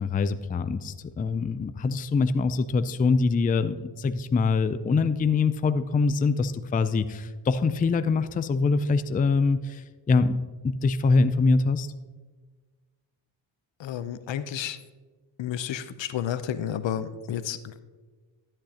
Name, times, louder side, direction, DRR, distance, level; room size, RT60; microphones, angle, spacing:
voice 1, 0.0-10.4 10.6-11.9, left 4 dB, 20° left, 11 dB, 0.4 m, -24 dB
voice 2, 13.8-14.8 15.4-17.8, left 9 dB, 65° left, 12 dB, 0.7 m, -31 dB
12.5 x 8.8 x 2.9 m, 1.4 s
cardioid pair, 75°, 48 cm